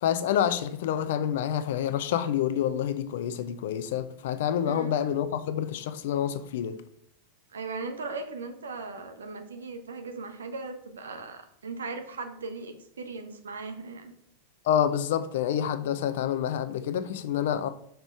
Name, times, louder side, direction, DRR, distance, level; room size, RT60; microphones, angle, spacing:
voice 1, 0.0-6.7 14.6-17.7, left 9 dB, 55° left, 0.6 m, -28 dB
voice 2, 7.5-14.1, right 3 dB, 70° right, 1.0 m, -38 dB
6.1 x 5.3 x 4.5 m
figure-of-eight pair, 90°, 0 cm